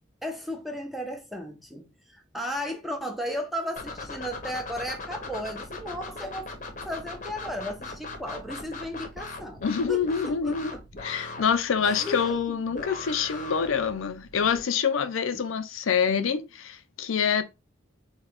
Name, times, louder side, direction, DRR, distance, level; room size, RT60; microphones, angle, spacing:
voice 1, 0.2-6.5 6.8-9.6 9.9-10.8 11.8-12.2 12.7-12.9 15.3-15.4, equal, ahead, 0.6 m, -35 dB
sound 1, 3.8-14.6, left 3 dB, 40° left, 0.7 m, -40 dB
voice 2, 9.6-10.7 11.0-17.4, left 6 dB, 80° left, 0.5 m, -26 dB
3.9 x 2.8 x 3.4 m
head